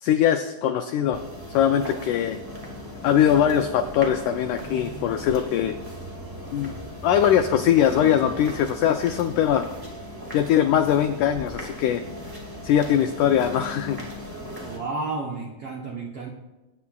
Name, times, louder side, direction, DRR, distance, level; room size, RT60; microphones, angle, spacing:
voice 1, 0.0-1.2 1.5-2.4 3.0-5.8 6.5-6.7 7.0-9.7 10.3-12.0 12.6-14.0, left 9 dB, 85° left, 7 dB, 1.8 m, -21 dB
sound 1, 1.1-14.8, equal, 25° right, 0.4 m, -37 dB
voice 2, 14.7-16.3, right 3 dB, 80° right, -1 dB, 1.3 m, -31 dB
22.5 x 9.5 x 2.3 m, 1.1 s
omnidirectional pair, 4.2 m